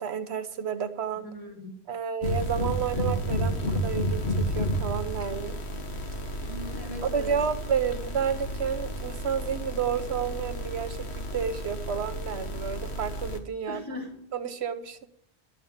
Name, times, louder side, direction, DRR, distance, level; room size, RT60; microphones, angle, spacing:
voice 1, 0.0-1.3 1.9-5.6 7.0-11.1 11.3-13.8 14.3-15.1, right 7 dB, 80° right, 10 dB, 1.1 m, -31 dB
voice 2, 1.1-1.8 6.4-7.3 13.7-14.1, equal, 20° left, -1 dB, 3.5 m, -39 dB
sound 1, 2.2-13.4, equal, 85° left, 1.7 m, -31 dB
12.0 x 7.2 x 9.4 m, 0.72 s
omnidirectional pair, 1.1 m